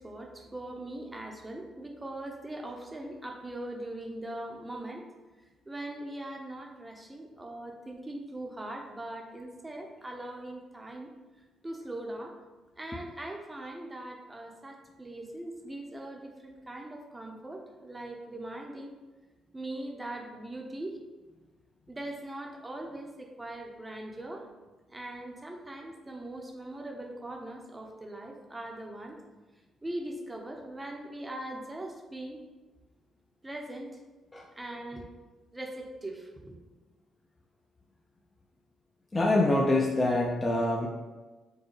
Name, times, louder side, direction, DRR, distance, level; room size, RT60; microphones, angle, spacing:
voice 1, 0.0-5.1 5.7-11.1 11.6-12.3 12.8-18.9 19.5-21.0 21.9-24.4 24.9-29.2 29.8-32.4 33.4-33.9 34.6-35.1 35.5-36.6, right 1 dB, 15° right, 1 dB, 0.7 m, -40 dB
voice 2, 39.1-40.9, left 2 dB, 20° left, -2 dB, 0.5 m, -25 dB
6.3 x 2.2 x 3.2 m, 1.2 s
cardioid pair, 90°, 0 cm